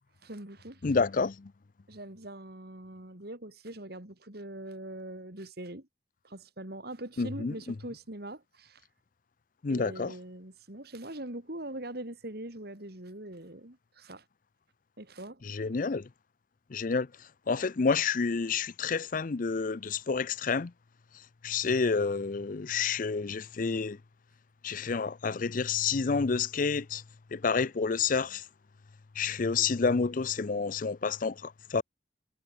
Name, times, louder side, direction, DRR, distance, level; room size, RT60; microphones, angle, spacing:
voice 1, 0.2-1.0 1.9-5.9 6.2-8.9 9.7-14.3 15.0-15.4, right 1 dB, 55° right, 3.5 m, -42 dB
voice 2, 0.8-1.3 7.2-7.5 9.6-10.1 15.5-16.0 16.7-17.1 17.5-20.7 21.4-24.0 24.6-27.0 27.3-28.4 29.2-31.8, left 5 dB, 45° left, 0.5 m, -29 dB
head